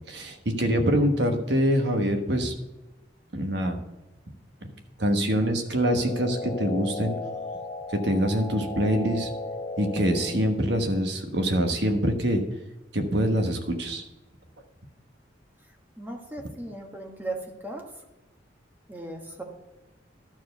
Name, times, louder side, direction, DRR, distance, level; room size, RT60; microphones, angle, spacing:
voice 1, 0.1-2.5 3.3-3.8 4.6-4.7 5.0-7.1 8.0-9.3 9.8-12.4 12.9-14.0, equal, 60° right, 4 dB, 1.2 m, -25 dB
sound 1, 5.6-10.6, left 2 dB, 30° left, 0.7 m, -36 dB
voice 2, 16.0-17.9 18.9-19.4, right 2 dB, 10° right, 1 dB, 1.3 m, -37 dB
12.0 x 4.6 x 6.7 m, 1.0 s
head